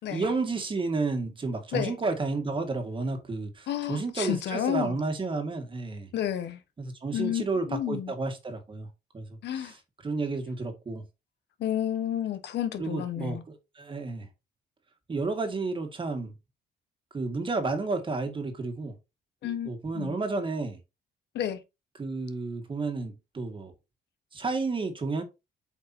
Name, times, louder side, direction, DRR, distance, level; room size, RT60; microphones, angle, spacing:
voice 1, 0.1-6.1 6.8-8.9 9.1-9.8 10.0-11.0 12.8-14.3 15.1-16.3 17.1-18.9 19.7-20.8 22.0-23.7 24.3-25.2, right 3 dB, 30° right, 1.9 m, -31 dB
voice 2, 3.7-5.0 6.1-6.6 7.1-8.1 9.4-9.7 11.6-13.4 19.4-20.1 21.3-21.6, left 10 dB, 75° left, 1.3 m, -31 dB
8.2 x 5.3 x 2.8 m
cardioid pair, 125°, 18 cm